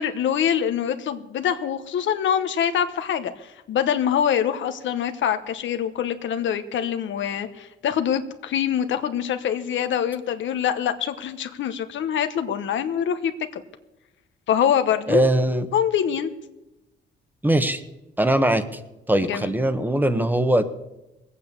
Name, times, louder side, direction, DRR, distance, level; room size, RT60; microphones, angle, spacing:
voice 1, 0.0-13.6 14.5-15.3 15.7-16.3 19.3-19.5, left 9 dB, 70° left, 9 dB, 1.1 m, -24 dB
voice 2, 15.1-15.7 17.4-17.8 18.2-18.8 19.1-20.6, right 1 dB, 10° right, 11 dB, 1.3 m, -21 dB
19.5 x 8.6 x 7.0 m, 0.98 s
cardioid pair, 90°, 20 cm